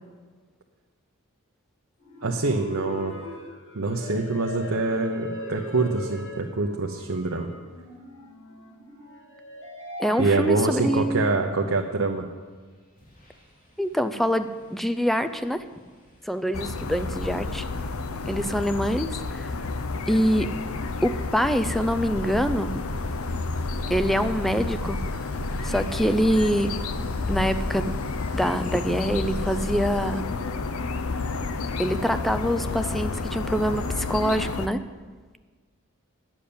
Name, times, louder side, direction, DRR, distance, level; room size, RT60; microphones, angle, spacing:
sound 1, 2.0-11.4, equal, 60° left, 3.0 m, -40 dB
voice 1, 2.2-3.1 3.7-7.5 10.2-12.2, right 3 dB, 70° right, 1 dB, 0.9 m, -25 dB
voice 2, 10.0-11.3 13.8-15.6 16.2-17.7 18.2-19.5 20.1-20.5 21.0-22.7 23.9-25.0 25.6-26.7 27.3-27.9 28.3-30.3 31.8-34.8, equal, ahead, 10 dB, 0.5 m, -25 dB
sound 2, 12.4-12.6 12.9-30.2, equal, 40° left, 2.3 m, -40 dB
sound 3, 16.5-34.7, left 3 dB, 80° left, 0.7 m, -31 dB
10.0 x 7.4 x 8.6 m, 1.4 s
head